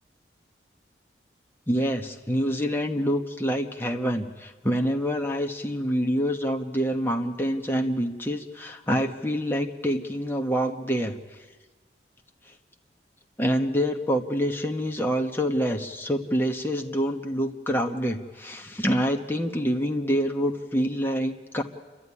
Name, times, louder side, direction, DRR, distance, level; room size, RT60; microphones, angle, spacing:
voice 1, 1.7-11.2 13.4-21.6, equal, 10° left, 3 dB, 1.2 m, -26 dB
28.5 x 13.0 x 9.8 m, 1.4 s
head